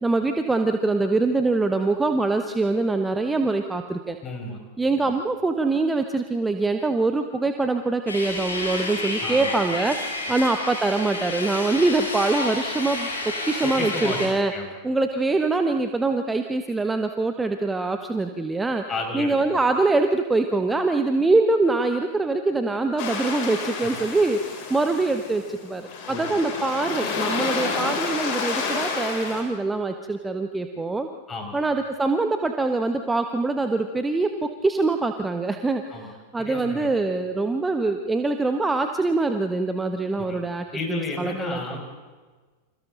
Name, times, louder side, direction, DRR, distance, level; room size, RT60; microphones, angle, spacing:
voice 1, 0.0-4.2 4.8-14.5 14.8-18.8 19.1-31.1 31.5-41.6, right 3 dB, 10° right, 6 dB, 1.2 m, -24 dB
voice 2, 4.2-4.6 5.0-5.1 9.2-9.5 13.6-14.2 14.5-14.7 18.9-19.4 23.8-23.9 26.1-26.4 31.3-31.6 35.9-36.1 36.4-36.9 40.2-40.4 40.7-41.8, left 3 dB, 20° left, 1 dB, 5.9 m, -32 dB
sound 1, 8.1-14.3, left 2 dB, 80° left, 7.9 m, -30 dB
sound 2, 23.0-29.4, left 4 dB, 45° left, 6.6 m, -30 dB
30.0 x 27.0 x 4.0 m, 1.4 s
figure-of-eight pair, 90°, 0 cm